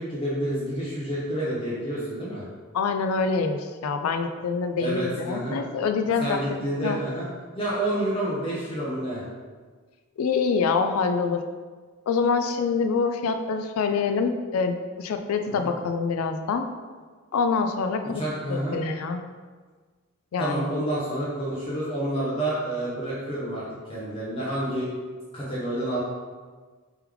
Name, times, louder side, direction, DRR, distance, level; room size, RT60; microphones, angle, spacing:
voice 1, 0.0-2.4 4.8-5.6 6.2-7.2 7.6-9.2 15.6-15.7 18.1-18.8 20.4-23.6 23.9-24.9 25.3-26.0, right 1 dB, 25° left, -7 dB, 0.7 m, -29 dB
voice 2, 2.7-7.0 10.2-11.4 12.1-16.6 17.3-18.2 18.5-19.2 20.3-20.7, left 5 dB, 85° left, 7 dB, 0.4 m, -25 dB
3.4 x 3.1 x 3.4 m, 1.5 s
head